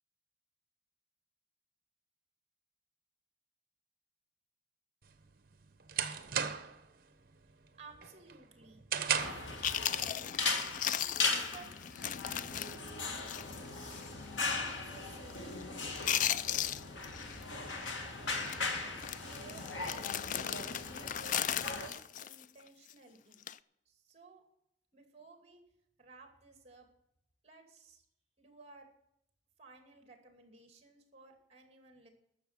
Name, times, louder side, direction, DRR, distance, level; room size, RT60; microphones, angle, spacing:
sound 1, 5.1-6.9 7.3-7.6 8.0-9.6, right 7 dB, 55° right, 1.0 m, -35 dB
voice 1, 7.8-8.8 9.4-9.6 10.9-11.7 14.8-15.6 18.9-19.7 20.3-23.4 23.9-24.4 24.9-25.6 26.0-26.9 27.4-28.0 28.4-28.9 29.6-32.1, right 3 dB, 35° right, 5 dB, 2.5 m, -56 dB
sound 2, 9.2-21.9, left 3 dB, 85° left, 1.7 m, -38 dB
Chewing mastication, 9.3-9.4 9.6-13.7 13.9-14.1 14.6-14.9 15.1-15.6 15.9-17.4 17.7-18.0 18.4-18.6 19.0-22.9 23.3-23.6, left 10 dB, 45° left, 0.4 m, -37 dB
12.5 x 7.0 x 8.2 m, 0.78 s
head